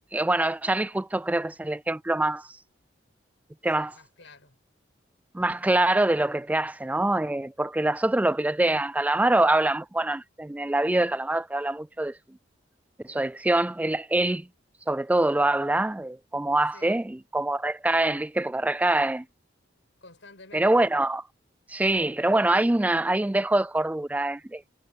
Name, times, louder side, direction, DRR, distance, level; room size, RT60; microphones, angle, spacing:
voice 1, 0.1-2.5 3.6-3.9 5.3-12.1 13.0-14.5 14.9-19.3 20.5-21.2 21.7-24.6, right 2 dB, 10° right, 0.3 m, -24 dB
voice 2, 3.7-4.6 16.7-17.0 20.0-20.9, left 3 dB, 75° left, 6.1 m, -51 dB
head